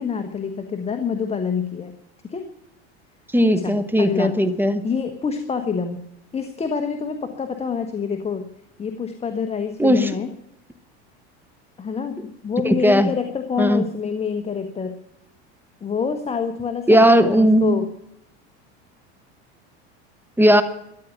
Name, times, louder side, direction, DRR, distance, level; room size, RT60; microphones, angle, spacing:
voice 1, 0.0-1.9 2.3-2.5 3.6-4.3 4.8-6.0 6.3-8.5 8.8-10.3 11.8-15.0 15.8-17.9, left 6 dB, 20° left, 6 dB, 1.3 m, -27 dB
voice 2, 3.3-4.8 9.8-10.1 12.6-13.1 13.6-13.8 16.9-17.8 20.4-20.6, equal, 5° right, 12 dB, 1.1 m, -16 dB
13.5 x 9.4 x 9.3 m, 0.78 s
supercardioid pair, 115°, 32 cm